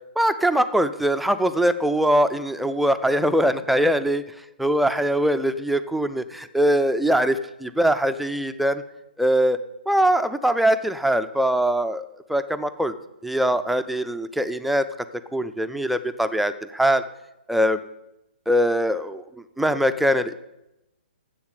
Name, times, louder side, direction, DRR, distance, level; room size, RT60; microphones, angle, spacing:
voice 1, 0.2-4.2 4.6-8.8 9.2-9.6 9.9-12.9 13.2-14.9 15.3-17.0 17.5-17.8 18.5-19.2 19.6-20.3, right 1 dB, ahead, 9 dB, 0.4 m, -22 dB
7.3 x 7.1 x 8.2 m, 0.91 s
figure-of-eight pair, 130°, 6 cm